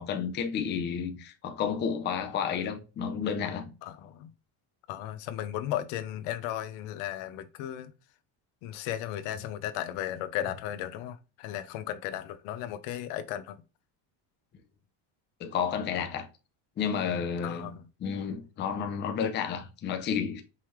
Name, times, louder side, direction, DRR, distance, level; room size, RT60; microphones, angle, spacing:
voice 1, 0.0-3.7 15.4-16.3 16.8-20.4, left 7 dB, 25° left, 0.4 m, -31 dB
voice 2, 3.8-4.3 4.9-7.9 8.6-13.6 17.4-17.7, left 12 dB, 90° left, 0.8 m, -35 dB
5.5 x 3.1 x 3.0 m
cardioid pair, 175°, 47 cm